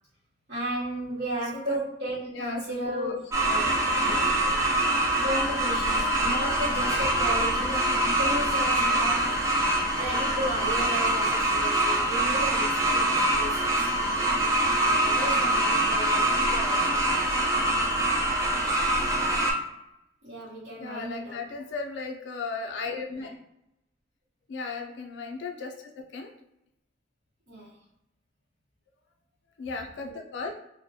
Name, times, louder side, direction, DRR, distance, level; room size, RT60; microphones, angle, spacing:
voice 1, 0.5-4.4 5.2-9.4 9.9-13.9 14.8-17.1 18.6-18.8 20.2-21.5 23.1-23.3 27.5-27.8, right 1 dB, 65° right, -10 dB, 0.8 m, -35 dB
voice 2, 2.3-3.2 15.8-16.8 17.1-17.2 20.8-23.4 24.5-26.3 29.6-30.5, left 4 dB, 75° left, 3 dB, 0.3 m, -36 dB
sound 1, 3.3-19.5, right 1 dB, 15° right, 0.4 m, -24 dB
2.3 x 2.1 x 2.6 m, 0.84 s
head